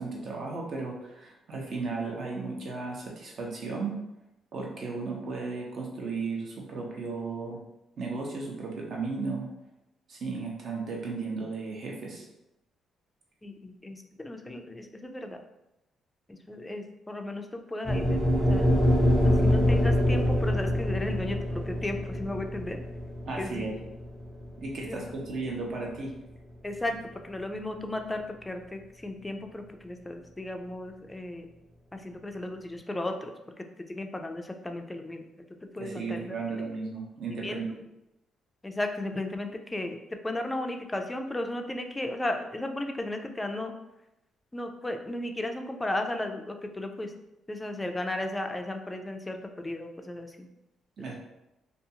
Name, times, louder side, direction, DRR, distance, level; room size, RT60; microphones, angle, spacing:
voice 1, 0.0-4.0 4.5-7.6 8.0-9.5 10.1-12.3 23.3-23.7 24.6-26.1 35.8-37.7 51.0-51.1, right 4 dB, 55° right, -1 dB, 0.7 m, -35 dB
voice 2, 13.4-15.4 16.3-18.7 19.2-22.8 23.4-23.6 24.9-25.0 26.6-26.9 27.2-31.5 31.9-33.6 33.9-35.3 35.7-36.3 37.4-37.6 38.6-40.0 40.2-43.7 44.5-47.1 47.5-50.5, left 1 dB, 15° left, 5 dB, 0.3 m, -35 dB
sound 1, 17.8-26.1, left 1 dB, 15° right, 1.0 m, -25 dB
2.5 x 2.3 x 2.8 m, 0.91 s
cardioid pair, 90°, 0 cm